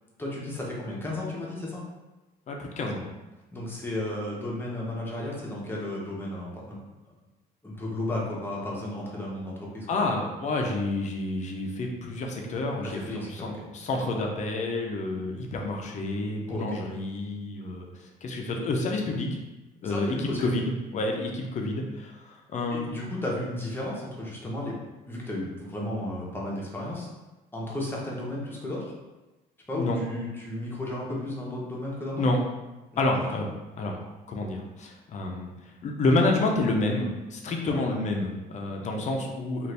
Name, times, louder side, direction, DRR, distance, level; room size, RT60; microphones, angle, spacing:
voice 1, 0.2-1.8 3.5-6.8 7.6-10.2 12.9-13.5 16.5-16.8 19.8-20.5 22.7-24.8 25.1-27.1 27.5-28.9 29.7-32.2 32.9-33.3 37.6-37.8, left 1 dB, 15° left, -4 dB, 0.9 m, -34 dB
voice 2, 2.5-3.1 9.9-19.4 19.8-20.6 20.9-23.1 29.8-30.0 32.2-32.4 33.0-33.5 33.8-34.0 34.3-35.5 35.8-39.7, left 2 dB, 45° left, 1 dB, 0.5 m, -29 dB
2.6 x 2.5 x 3.2 m, 1.1 s
cardioid pair, 110°, 17 cm